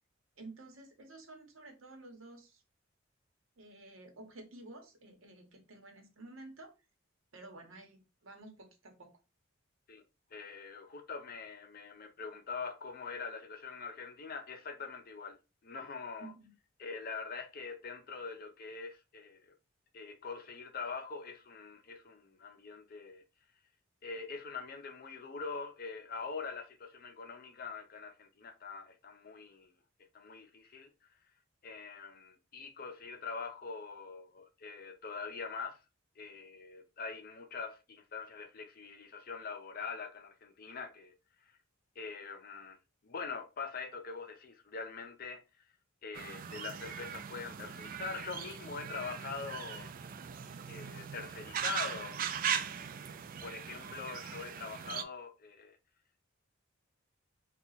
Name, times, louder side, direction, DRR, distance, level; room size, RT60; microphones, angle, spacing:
voice 1, 0.4-2.6 3.6-6.7 7.3-9.2 16.2-16.5, right 2 dB, 75° right, 1.0 m, -52 dB
voice 2, 10.3-15.4 15.6-16.3 16.8-19.5 19.9-23.2 24.0-29.7 30.1-30.9 31.6-35.8 36.2-41.1 41.4-41.5 42.0-42.8 43.0-45.4 46.0-49.9 50.7-52.2 52.5-53.0 53.4-55.8, left 5 dB, 45° left, 0.6 m, -43 dB
sound 1, 46.1-55.0, right 8 dB, 45° right, 0.3 m, -39 dB
2.8 x 2.3 x 3.9 m
head